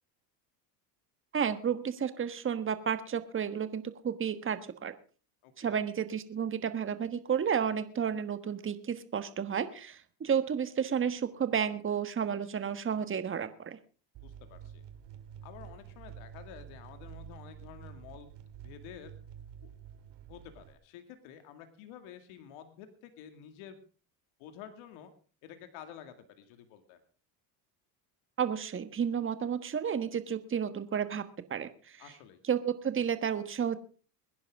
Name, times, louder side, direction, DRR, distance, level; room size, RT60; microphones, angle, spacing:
voice 1, 1.3-4.9 5.6-13.8 28.4-31.2 31.5-32.0 32.4-33.8, right 7 dB, 25° right, 11 dB, 1.4 m, -32 dB
voice 2, 5.4-5.8 14.2-14.9 15.4-18.3 18.6-19.1 19.6-19.7 20.3-23.8 24.4-25.1 25.4-27.0 32.0-32.4, left 9 dB, 70° left, 8 dB, 2.3 m, -50 dB
sound 1, 14.1-20.7, right 9 dB, 55° right, 2.3 m, -49 dB
22.5 x 10.5 x 3.6 m, 0.38 s
supercardioid pair, 95°, 50 cm